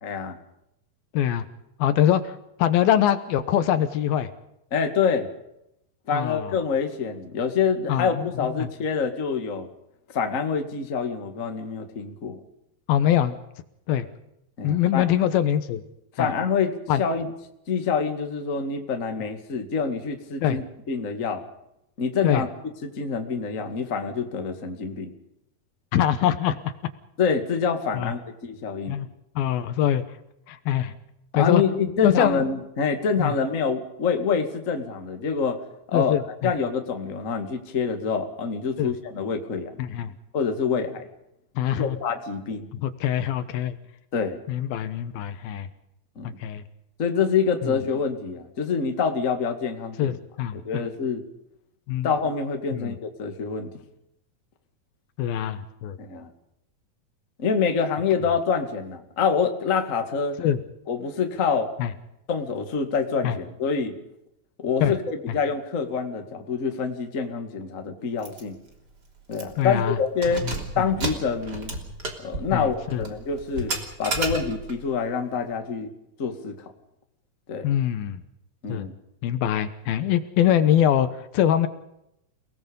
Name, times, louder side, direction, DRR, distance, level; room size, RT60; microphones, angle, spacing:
voice 1, 0.0-0.4 4.7-5.3 6.1-9.7 10.1-12.4 14.6-15.1 16.1-17.3 17.7-21.4 22.0-22.5 22.8-25.1 27.2-29.0 31.3-35.6 35.9-36.2 36.4-39.7 40.3-41.1 41.7-42.7 44.1-44.4 46.1-46.3 47.0-50.2 50.5-51.2 52.0-53.7 56.0-56.3 57.4-60.4 60.9-61.7 62.3-63.9 64.6-68.6 69.3-70.4 70.7-71.7 72.2-73.7 74.0-75.9 76.2-76.7 77.5-77.7 78.6-78.9, left 5 dB, 30° left, 5 dB, 1.7 m, -26 dB
voice 2, 1.1-1.5 1.8-4.3 6.1-6.5 7.9-8.3 8.6-8.7 12.9-13.4 13.9-14.1 14.6-15.8 16.2-16.3 16.9-17.0 20.4-20.6 22.2-22.4 25.9-26.6 27.9-28.1 28.9-29.1 29.4-30.0 30.5-30.9 31.3-31.6 32.0-32.4 33.2-33.3 35.9-36.5 38.8-38.9 39.8-40.1 41.6-42.0 42.7-43.8 44.5-45.7 46.2-46.6 47.6-47.8 50.0-50.8 51.9-52.1 52.7-52.9 55.2-56.0 60.4-60.6 61.8-61.9 63.2-63.4 64.8-64.9 65.3-65.4 69.6-70.0 70.4-70.9 72.5-73.0 77.6-78.2 78.7-78.9 79.2-81.7, left 10 dB, 75° left, 11 dB, 2.8 m, -23 dB
Keys jangling, 68.2-68.4 68.8-68.9 69.3-69.7 70.1-74.8, right 2 dB, 25° right, 3.2 m, -32 dB
29.5 x 19.0 x 5.3 m, 0.80 s
omnidirectional pair, 4.6 m